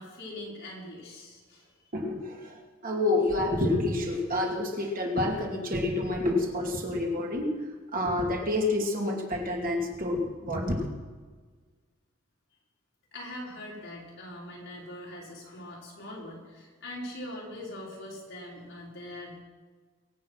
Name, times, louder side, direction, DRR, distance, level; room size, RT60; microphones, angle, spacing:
voice 1, 0.0-1.9 13.1-19.4, left 1 dB, 60° left, -4 dB, 5.3 m, -42 dB
voice 2, 1.9-7.6 7.9-10.9, left 2 dB, 40° right, 0 dB, 2.6 m, -28 dB
23.5 x 8.7 x 5.7 m, 1.4 s
head